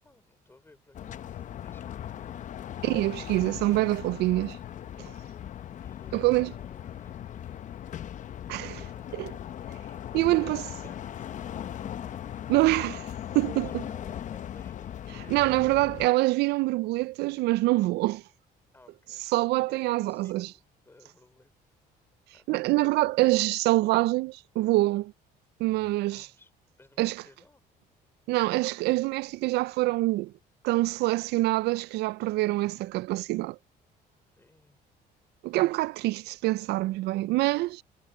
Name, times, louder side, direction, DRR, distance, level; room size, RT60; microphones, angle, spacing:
voice 1, 0.0-2.3 5.8-7.3 9.0-9.2 10.0-12.5 13.4-15.7 18.7-21.5 22.3-22.7 26.1-26.5 26.8-27.6 34.3-34.9, left 2 dB, 15° left, 5.1 m, -58 dB
sound 1, 0.9-16.1, left 10 dB, 50° left, 0.7 m, -39 dB
voice 2, 2.8-4.6 6.1-6.5 8.5-9.3 10.1-10.7 12.5-13.1 13.3-13.7 15.1-18.2 19.3-20.5 22.5-25.1 25.6-26.3 27.0-27.2 28.3-30.3 30.6-33.6 35.4-37.8, right 19 dB, 80° right, 0.4 m, -25 dB
cardioid pair, 110°, 17 cm